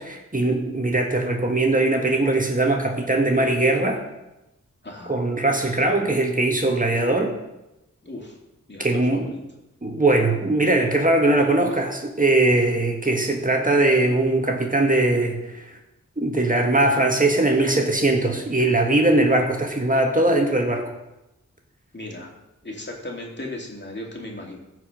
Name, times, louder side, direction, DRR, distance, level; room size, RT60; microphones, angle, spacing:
voice 1, 0.0-4.0 5.1-7.3 8.8-9.2 9.8-15.6 16.2-20.9, right 2 dB, 25° right, 2 dB, 1.6 m, -20 dB
voice 2, 8.0-8.4 8.7-9.4 21.9-22.3 22.6-24.6, left 1 dB, 35° left, -1 dB, 2.6 m, -36 dB
15.0 x 5.0 x 5.2 m, 0.93 s
cardioid pair, 45°, 31 cm